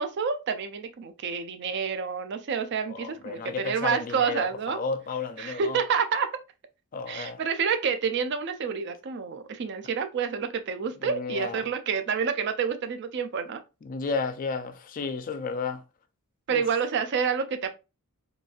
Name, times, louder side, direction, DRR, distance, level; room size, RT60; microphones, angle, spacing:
voice 1, 0.0-4.8 5.4-6.3 7.1-13.6 16.5-17.7, right 6 dB, 50° right, 0.4 m, -28 dB
voice 2, 2.9-5.8 6.9-7.4 11.0-11.6 13.8-15.8 16.5-16.6, left 4 dB, 40° left, 0.3 m, -32 dB
3.9 x 2.4 x 2.3 m
head